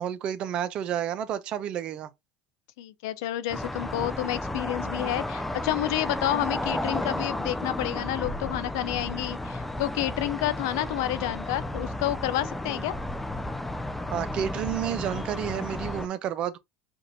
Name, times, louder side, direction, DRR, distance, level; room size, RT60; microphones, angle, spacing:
voice 1, 0.0-2.1 14.1-16.6, right 10 dB, 50° right, 0.6 m, -30 dB
voice 2, 2.8-12.9, left 14 dB, 80° left, 0.4 m, -29 dB
sound 1, 3.5-16.1, left 1 dB, 5° left, 0.5 m, -33 dB
5.2 x 2.5 x 2.6 m
supercardioid pair, 95°, 2 cm